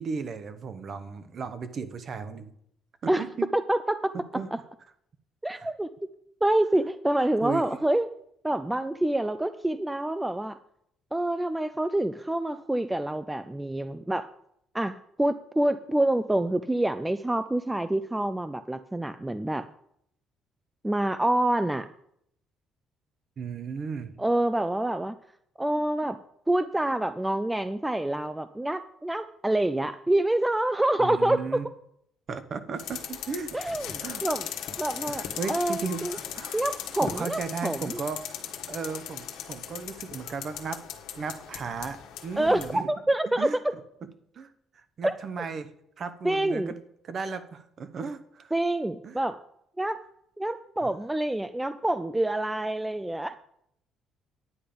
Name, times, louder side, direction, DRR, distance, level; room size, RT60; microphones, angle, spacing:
voice 1, 0.0-2.5 3.0-3.5 4.1-4.5 5.6-5.7 7.4-7.7 23.4-24.2 31.0-31.7 32.3-33.7 34.0-34.3 35.1-36.6 36.9-38.2 38.7-40.8 41.2-42.0 42.2-42.9 43.4-43.6 44.3-44.5 44.7-45.7 46.0-46.8 47.0-48.5 49.0-49.2 50.8-50.9, right 5 dB, 40° right, 11 dB, 0.9 m, -35 dB
voice 2, 3.5-4.1 5.4-5.9 6.4-8.1 8.4-10.6 11.1-14.3 14.7-19.7 20.8-21.9 24.2-25.1 25.6-26.2 26.5-31.4 33.5-34.5 34.8-35.2 35.5-36.2 36.5-38.0 42.4-43.5 45.0-45.2 46.2-46.7 48.5-49.4 49.8-50.0 50.4-53.4, right 1 dB, 5° right, 11 dB, 0.3 m, -27 dB
sound 1, 32.8-42.8, left 9 dB, 90° left, 1.4 m, -38 dB
9.8 x 8.6 x 5.1 m, 0.73 s
cardioid pair, 145°, 0 cm